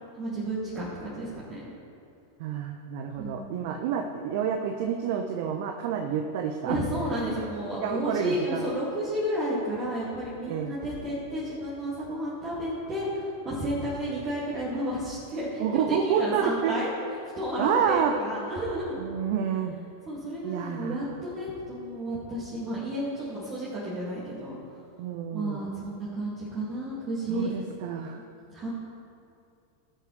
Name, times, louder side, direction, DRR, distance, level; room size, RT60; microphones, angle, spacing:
voice 1, 0.2-1.7 3.2-3.7 6.6-16.9 17.4-19.0 20.1-24.6 25.3-27.5 28.5-28.7, right 1 dB, 30° right, -8 dB, 2.4 m, -32 dB
voice 2, 2.4-6.8 7.8-8.7 10.5-10.8 15.6-16.8 17.6-18.1 19.0-19.7 20.4-21.1 25.0-25.6 27.3-28.2, right 7 dB, 50° right, 5 dB, 0.6 m, -28 dB
17.5 x 8.0 x 3.3 m, 2.6 s
figure-of-eight pair, 90°, 0 cm